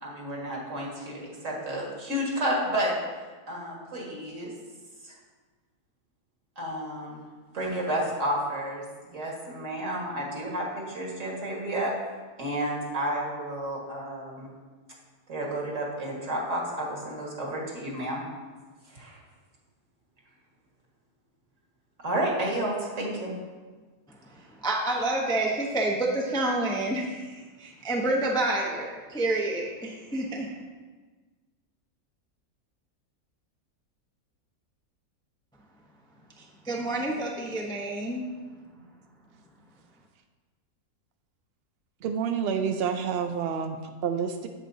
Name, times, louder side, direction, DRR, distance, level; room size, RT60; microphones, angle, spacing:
voice 1, 0.0-3.0 3.5-4.5 5.0-5.1 6.6-7.2 7.5-8.8 9.1-11.9 12.4-14.5 15.3-18.2 18.9-19.2 22.0-23.3, right 1 dB, 55° right, -3 dB, 2.0 m, -31 dB
voice 2, 24.6-30.5 36.4-38.2, right 2 dB, 5° left, -2 dB, 0.5 m, -28 dB
voice 3, 42.0-44.5, right 7 dB, 80° right, 6 dB, 0.5 m, -29 dB
8.1 x 7.8 x 2.7 m, 1.4 s
omnidirectional pair, 1.6 m